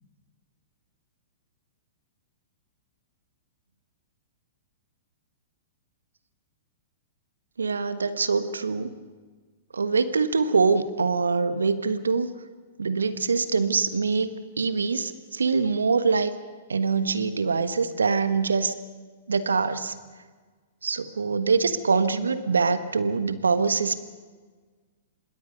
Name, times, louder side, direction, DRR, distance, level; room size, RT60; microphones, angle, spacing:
voice 1, 7.6-9.0 9.7-12.3 12.8-14.3 14.6-16.4 16.7-18.7 19.3-19.9 20.8-24.0, right 4 dB, 75° right, 12 dB, 1.4 m, -24 dB
26.5 x 21.5 x 5.4 m, 1.4 s
figure-of-eight pair, 105°, 0 cm